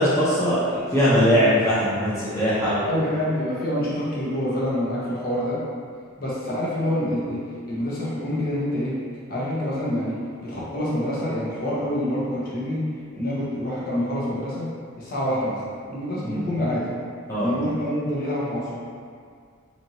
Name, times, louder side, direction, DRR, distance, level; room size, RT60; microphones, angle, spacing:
voice 1, 0.0-2.9 16.2-16.5 17.3-17.5, equal, 15° left, -11 dB, 0.7 m, -21 dB
voice 2, 2.8-5.6 6.2-7.4 7.7-8.9 9.3-12.8 13.1-14.7 15.0-15.6 15.9-16.9 17.4-18.8, equal, 45° left, -8 dB, 1.0 m, -26 dB
4.2 x 2.9 x 2.8 m, 2.1 s
head